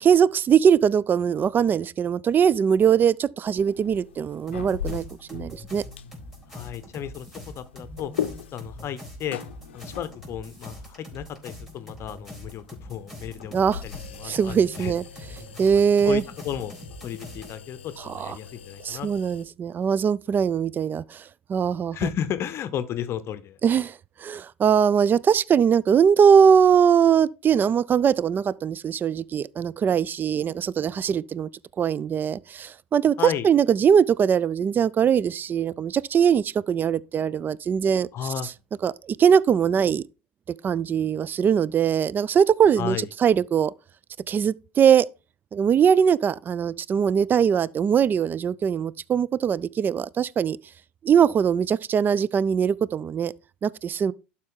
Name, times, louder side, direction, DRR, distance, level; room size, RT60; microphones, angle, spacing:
voice 1, 0.0-5.0 5.3-5.8 13.5-13.8 14.2-15.0 15.6-16.2 18.0-18.4 18.8-21.2 21.5-22.1 23.6-31.5 31.8-38.1 38.4-38.5 38.8-40.0 40.6-43.7 44.3-45.1 45.5-50.6 51.0-53.3 53.6-54.1, right 7 dB, 30° right, 0.3 m, -21 dB
sound 1, 3.4-19.4, left 9 dB, 80° left, 0.5 m, -40 dB
sound 2, 4.5-17.6, left 1 dB, 5° right, 3.7 m, -43 dB
voice 2, 6.5-8.1 8.5-9.4 9.7-13.5 13.8-14.9 15.8-16.8 17.0-19.1 21.9-23.8 33.2-33.5 38.1-38.5 42.8-43.1, left 9 dB, 45° left, 0.7 m, -33 dB
11.5 x 4.3 x 3.7 m
hypercardioid pair, 70°, 6 cm